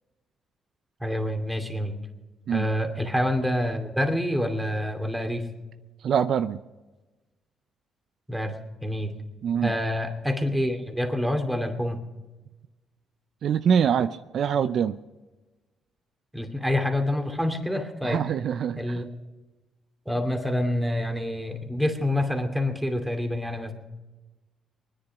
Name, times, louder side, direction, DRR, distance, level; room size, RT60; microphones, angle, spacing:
voice 1, 1.0-1.9 2.5-5.4 8.3-8.6 8.8-9.1 9.6-12.0 16.3-18.2 18.8-19.1 20.1-23.7, left 1 dB, 5° right, 4 dB, 2.5 m, -27 dB
voice 2, 6.0-6.6 9.4-9.7 13.4-14.9 18.0-19.0, right 8 dB, 65° right, 12 dB, 0.5 m, -24 dB
21.0 x 10.0 x 5.7 m, 1.2 s
cardioid pair, 90°, 0 cm